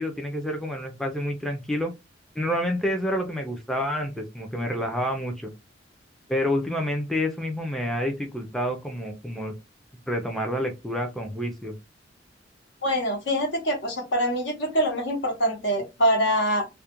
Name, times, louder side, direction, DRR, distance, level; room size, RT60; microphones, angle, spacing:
voice 1, 0.0-1.9 2.4-5.5 6.3-9.5 10.1-11.8, equal, ahead, 0.4 m, -28 dB
voice 2, 12.8-16.7, equal, 65° left, 0.9 m, -24 dB
2.3 x 2.1 x 2.8 m
head